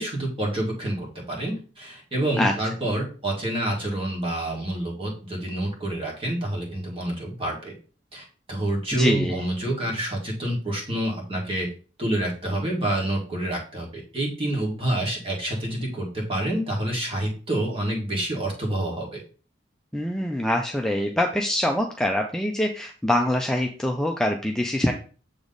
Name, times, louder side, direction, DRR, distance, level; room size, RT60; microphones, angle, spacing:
voice 1, 0.0-7.7 8.1-11.7 12.0-19.2, right 1 dB, 30° right, -2 dB, 1.8 m, -28 dB
voice 2, 8.9-9.4 19.9-24.9, left 1 dB, 5° left, 2 dB, 0.4 m, -24 dB
7.2 x 3.3 x 3.9 m, 0.38 s
head